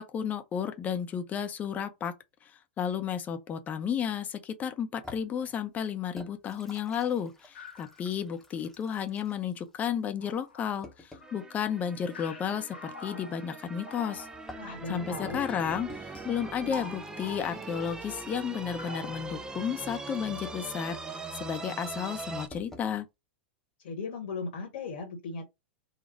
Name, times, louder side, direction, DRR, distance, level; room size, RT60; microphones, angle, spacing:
voice 1, 0.0-2.1 2.8-14.3 14.9-21.0 21.4-23.1, left 8 dB, 25° left, 0.8 m, -33 dB
sound 1, 5.0-11.4 14.1-22.9, left 2 dB, 5° left, 1.0 m, -52 dB
sound 2, 7.5-8.1 8.7-8.8 9.7-9.8 10.2-11.5 12.1-14.6 15.3-16.4 16.6-17.9 18.2-19.8 20.4-20.5, left 4 dB, 75° left, 1.0 m, -47 dB
sound 3, 11.2-22.5, right 3 dB, 10° right, 0.5 m, -41 dB
voice 2, 14.5-15.4 23.8-25.5, left 4 dB, 60° left, 1.3 m, -37 dB
4.1 x 2.3 x 4.5 m
hypercardioid pair, 100°, 6 cm